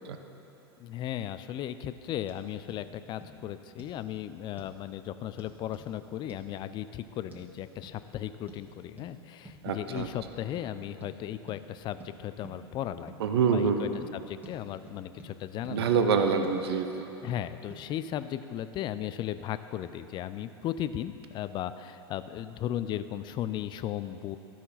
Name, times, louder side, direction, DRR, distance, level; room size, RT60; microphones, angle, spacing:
voice 1, 0.8-13.1 13.5-15.9 17.2-24.4, left 11 dB, 35° left, 12 dB, 0.4 m, -36 dB
sound 1, 2.3-2.4 2.7-2.8 3.2-3.3 3.8-4.0 4.6-4.8 5.4-5.9 6.3-6.4 7.3-7.4 7.8-8.0 8.5-8.7 9.0-9.1 9.4-9.6 10.0-10.2 10.5-10.7 11.0-11.1 11.5-11.6 12.0-12.1 12.4-12.6 13.1-13.2 13.6-13.7 14.0-14.1 14.4-14.6 14.9-15.3 15.6-15.8 16.2-16.6 17.3-17.4 17.7-17.8, right 1 dB, 10° right, 1.7 m, -49 dB
voice 2, 9.6-10.1 13.2-14.0 15.7-17.1, right 6 dB, 75° right, 6 dB, 0.7 m, -26 dB
13.0 x 5.8 x 4.1 m, 2.9 s
hypercardioid pair, 95°, 13 cm